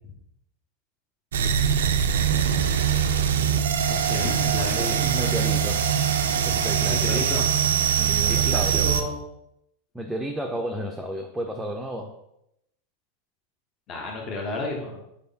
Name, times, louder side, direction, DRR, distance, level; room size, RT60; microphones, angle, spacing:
sound 1, 1.3-9.0, right 8 dB, 75° right, 0.3 m, -22 dB
voice 1, 3.8-5.0 6.8-7.5 8.3-9.2 13.9-14.9, left 2 dB, 35° left, 0 dB, 0.7 m, -31 dB
voice 2, 4.7-5.8 6.4-7.2 8.0-8.9 9.9-12.1, equal, 5° right, 1 dB, 0.4 m, -32 dB
4.0 x 3.4 x 2.8 m, 0.80 s
hypercardioid pair, 95°, 0 cm